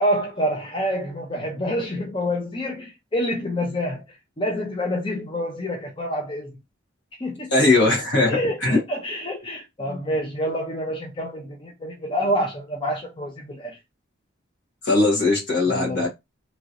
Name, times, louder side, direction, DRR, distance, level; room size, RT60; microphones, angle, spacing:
voice 1, 0.0-4.0 4.4-6.5 7.2-7.9 8.3-13.8 15.7-16.1, equal, 25° left, 0.6 m, -27 dB
voice 2, 7.5-8.8 9.9-10.0 14.8-16.1, left 2 dB, 60° left, 1.5 m, -20 dB
2.9 x 2.9 x 2.5 m
head